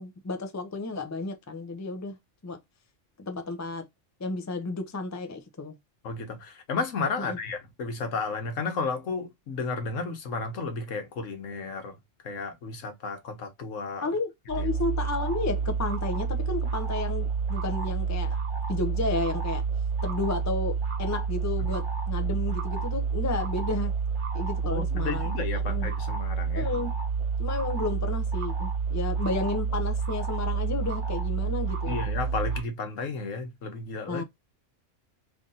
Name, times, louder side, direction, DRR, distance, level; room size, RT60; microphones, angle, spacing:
voice 1, 0.0-2.2 2.4-2.6 3.2-3.9 4.2-5.8 7.2-7.4 14.0-18.4 18.7-19.6 20.0-23.9 24.3-25.9 26.5-26.9 27.4-32.0 34.1-34.2, left 3 dB, 25° left, 0.3 m, -32 dB
voice 2, 6.0-11.9 12.2-14.1 14.6-14.7 24.7-26.7 31.9-34.2, left 4 dB, 85° left, 1.3 m, -33 dB
sound 1, 14.5-32.6, right 5 dB, 45° right, 1.1 m, -29 dB
3.4 x 2.6 x 3.8 m
omnidirectional pair, 1.3 m